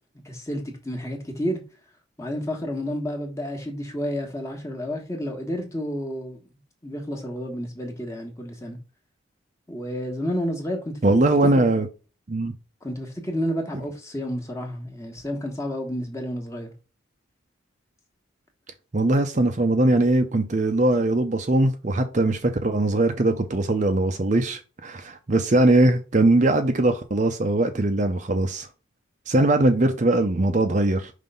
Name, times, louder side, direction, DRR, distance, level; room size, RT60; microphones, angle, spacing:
voice 1, 0.2-1.6 2.2-6.5 6.8-8.8 9.7-11.7 12.8-16.7, equal, 15° left, 1.3 m, -30 dB
voice 2, 11.0-11.9 12.3-12.5 18.9-28.7 29.3-31.1, right 2 dB, 35° right, 0.6 m, -21 dB
5.5 x 3.3 x 5.4 m
head